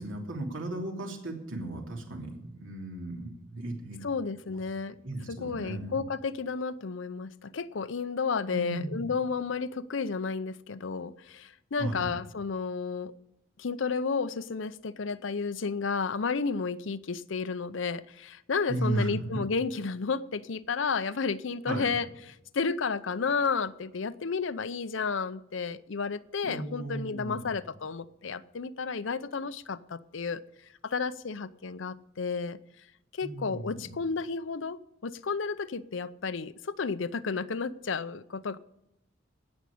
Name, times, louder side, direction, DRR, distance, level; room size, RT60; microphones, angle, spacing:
voice 1, 0.0-4.0 4.5-4.6 5.0-6.0 8.5-9.0 11.8-12.1 18.7-19.3 21.7-21.9 26.4-27.5 33.2-33.9, right 1 dB, 85° right, 3.2 m, -35 dB
voice 2, 4.0-5.0 5.3-13.1 13.6-22.1 22.5-30.4 30.8-32.6 33.1-38.6, left 5 dB, 70° left, 0.6 m, -32 dB
17.5 x 6.2 x 8.5 m
head